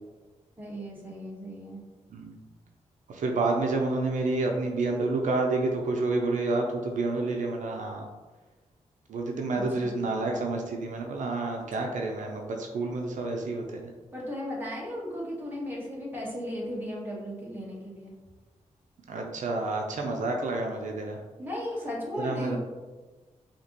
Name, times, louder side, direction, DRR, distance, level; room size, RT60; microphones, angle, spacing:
voice 1, 0.6-1.8 9.5-10.0 14.1-18.1 21.4-22.6, equal, 15° right, -6 dB, 1.4 m, -36 dB
voice 2, 3.1-8.1 9.1-13.8 19.1-21.2 22.2-22.6, right 3 dB, 85° right, 1 dB, 0.5 m, -29 dB
5.0 x 2.9 x 3.0 m, 1.3 s
wide cardioid pair, 115°, 13 cm